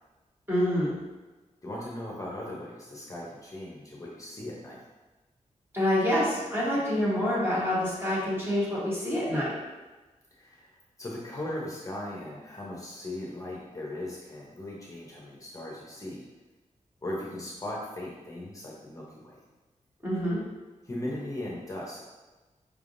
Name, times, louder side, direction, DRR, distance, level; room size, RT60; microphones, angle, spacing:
voice 1, 0.5-0.9 5.7-9.5 20.0-20.4, left 1 dB, 20° right, -8 dB, 1.3 m, -27 dB
voice 2, 1.6-4.8 10.3-16.2 17.0-19.4 20.8-22.0, left 1 dB, 25° left, -4 dB, 0.7 m, -38 dB
4.9 x 3.4 x 2.5 m, 1.2 s
wide cardioid pair, 150°, 13 cm